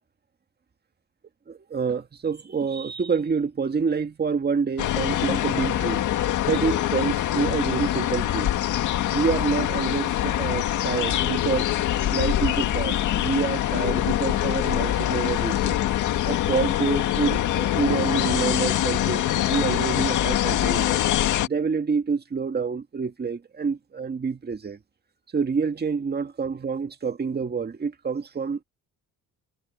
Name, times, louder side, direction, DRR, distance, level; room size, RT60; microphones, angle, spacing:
voice 1, 1.5-6.1 6.5-8.5 9.1-11.7 12.1-15.8 16.3-21.0 21.5-24.8 25.3-28.6, right 5 dB, 35° right, 1.9 m, -27 dB
sound 1, 4.8-21.5, left 12 dB, 80° left, 2.0 m, -24 dB
cardioid pair, 90°, 30 cm